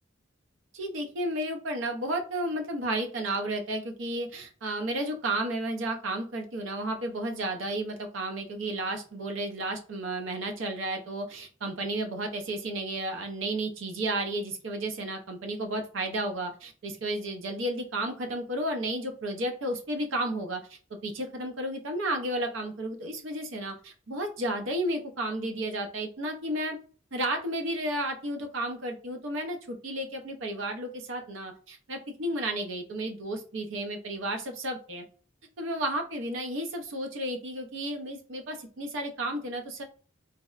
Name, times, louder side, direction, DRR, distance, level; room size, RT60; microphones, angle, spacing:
voice 1, 0.7-26.8 27.1-35.0 35.6-39.8, right 1 dB, 75° right, 4 dB, 0.5 m, -32 dB
2.7 x 2.0 x 2.3 m, 0.39 s
head